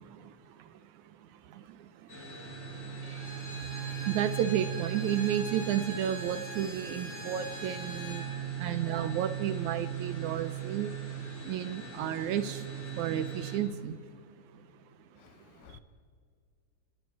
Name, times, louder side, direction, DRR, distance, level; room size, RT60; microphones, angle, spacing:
sound 1, 2.1-13.6, right 8 dB, 35° left, 4.8 m, -39 dB
Bowed string instrument, 3.0-8.3, right 1 dB, 10° right, 4.0 m, -43 dB
voice 1, 4.1-8.2 8.6-10.9 11.5-12.6 13.0-14.0, right 10 dB, 75° right, 1.9 m, -32 dB
voice 2, 15.2-15.8, left 8 dB, 80° left, 2.7 m, -54 dB
29.0 x 18.5 x 4.9 m
omnidirectional pair, 3.8 m